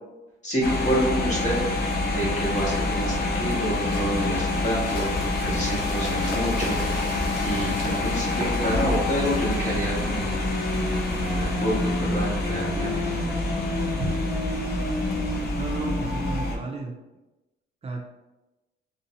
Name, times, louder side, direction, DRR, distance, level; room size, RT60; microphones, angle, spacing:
voice 1, 0.4-1.6 2.1-5.1 5.4-6.8 7.4-10.4 11.2-12.9, equal, 35° left, -5 dB, 1.4 m, -28 dB
sound 1, 0.6-16.6, left 2 dB, 55° left, 0.8 m, -26 dB
sound 2, 1.4-13.3 13.9-14.0, left 1 dB, 70° left, 1.1 m, -42 dB
Fireworks, 5.0-10.2, right 2 dB, 50° right, 0.8 m, -43 dB
voice 2, 15.6-16.9 17.8-18.1, right 4 dB, 30° right, 0 dB, 0.4 m, -32 dB
3.7 x 2.6 x 2.8 m, 1.0 s
cardioid pair, 90°, 20 cm